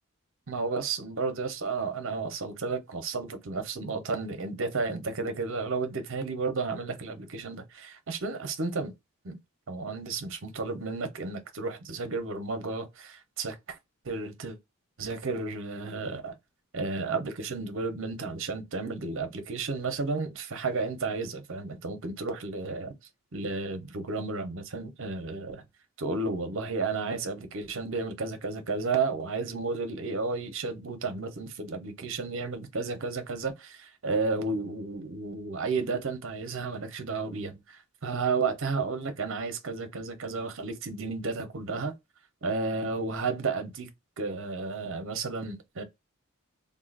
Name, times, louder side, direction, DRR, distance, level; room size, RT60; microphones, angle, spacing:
voice 1, 0.5-8.9 9.2-9.4 9.7-13.8 14.0-14.6 15.0-16.3 16.7-22.9 23.3-25.6 26.0-41.9 42.4-43.9 44.2-45.8, right 4 dB, 60° right, 0.8 m, -32 dB
3.7 x 2.4 x 2.4 m
head